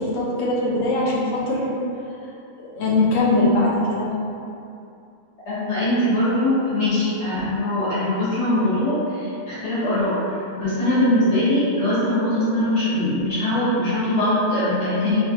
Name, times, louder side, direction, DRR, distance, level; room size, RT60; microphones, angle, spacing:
voice 1, 0.0-1.8 2.7-4.1, left 2 dB, 85° left, -4 dB, 1.0 m, -21 dB
voice 2, 5.4-10.2 10.5-15.2, left 1 dB, 65° left, -12 dB, 1.5 m, -21 dB
2.9 x 2.6 x 3.0 m, 2.6 s
omnidirectional pair, 1.3 m